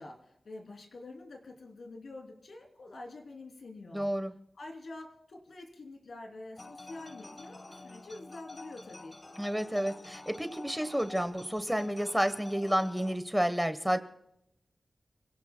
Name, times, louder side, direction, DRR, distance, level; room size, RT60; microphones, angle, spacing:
voice 1, 0.0-4.1 4.6-9.2, left 2 dB, 80° left, 2 dB, 3.0 m, -47 dB
voice 2, 3.9-4.3 9.4-14.0, equal, 5° right, 10 dB, 1.1 m, -30 dB
sound 1, 6.6-13.2, left 2 dB, 30° left, 1.3 m, -48 dB
29.5 x 17.0 x 2.2 m, 0.83 s
wide cardioid pair, 90°, 0 cm